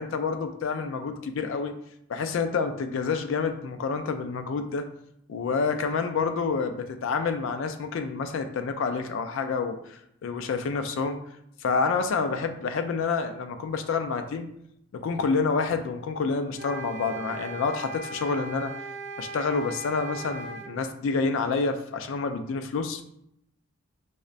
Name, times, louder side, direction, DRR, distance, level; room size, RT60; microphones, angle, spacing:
voice 1, 0.0-1.8 2.1-4.9 5.3-11.2 11.6-14.5 14.9-18.7 19.2-23.0, left 4 dB, 65° left, 7 dB, 0.3 m, -28 dB
sound 1, 16.5-20.7, right 2 dB, 50° right, 0.4 m, -38 dB
5.0 x 2.1 x 2.4 m, 0.76 s
head